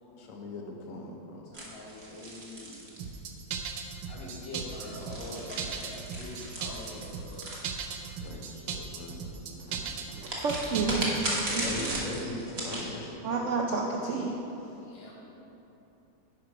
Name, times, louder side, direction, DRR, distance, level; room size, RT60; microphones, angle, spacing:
voice 1, 0.2-1.5 8.2-9.3 11.5-13.5, left 2 dB, 55° left, 1 dB, 1.2 m, -40 dB
voice 2, 1.4-2.8 4.1-7.4 14.8-15.1, left 1 dB, 85° left, -5 dB, 2.3 m, -44 dB
sound 1, 1.5-3.5 4.5-8.3 10.2-12.9, right 1 dB, 40° right, 1.4 m, -36 dB
sound 2, 3.0-11.3, right 6 dB, 90° right, 1.3 m, -38 dB
voice 3, 9.6-11.2 11.5-12.0 13.2-14.7, right 4 dB, 75° right, 0 dB, 0.7 m, -31 dB
10.5 x 4.7 x 4.8 m, 3.0 s
omnidirectional pair, 1.9 m